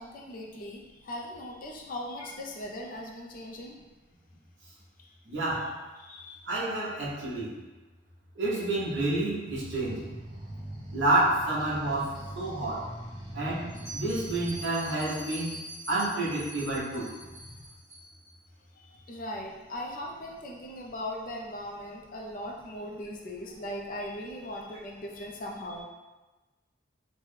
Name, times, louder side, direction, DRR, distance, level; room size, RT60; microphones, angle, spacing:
voice 1, 0.0-3.8 5.0-5.1 6.0-6.4 18.7-25.8, left 1 dB, 45° left, -1 dB, 0.4 m, -39 dB
voice 2, 5.3-5.7 6.5-7.5 8.4-10.0 10.9-12.8 13.3-13.7 13.9-15.5 15.9-17.1, right 2 dB, 65° right, -7 dB, 0.9 m, -29 dB
sound 1, 9.4-14.7 17.1-17.7, right 1 dB, 20° right, 0.5 m, -43 dB
Bell, 13.7-18.3, right 1 dB, 15° left, 0.8 m, -44 dB
3.1 x 2.1 x 3.2 m, 1.2 s
head